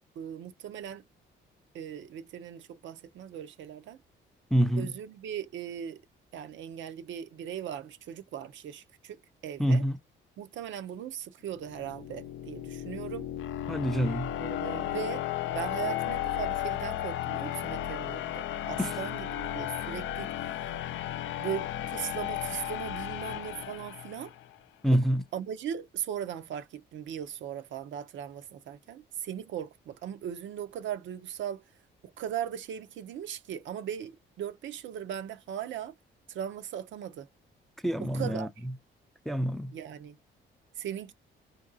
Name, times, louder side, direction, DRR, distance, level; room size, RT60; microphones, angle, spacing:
voice 1, 0.2-1.0 1.7-4.0 4.8-6.0 6.3-9.8 10.4-13.3 14.4-15.2 15.5-20.3 21.4-24.3 24.9-25.0 25.3-31.6 32.0-35.9 36.3-37.3 38.0-38.6 39.7-40.2 40.8-41.1, right 9 dB, 70° right, 0.6 m, -38 dB
voice 2, 4.5-4.9 9.6-10.0 13.7-14.3 18.8-18.9 24.8-25.2 37.8-38.5 39.3-39.7, equal, ahead, 0.4 m, -26 dB
sound 1, 11.6-24.5, left 12 dB, 75° left, 0.4 m, -34 dB
4.5 x 2.6 x 2.6 m
cardioid pair, 90°, 20 cm